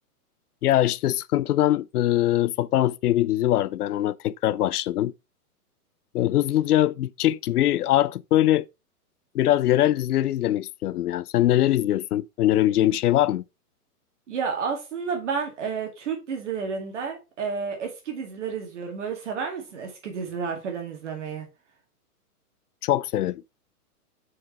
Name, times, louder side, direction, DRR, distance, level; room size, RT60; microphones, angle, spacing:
voice 1, 0.6-5.1 6.1-8.6 9.3-13.4 22.8-23.4, left 13 dB, 75° left, 0.6 m, -22 dB
voice 2, 14.3-21.5, right 6 dB, 50° right, 2.1 m, -31 dB
6.4 x 4.6 x 4.2 m
hypercardioid pair, 170°, 46 cm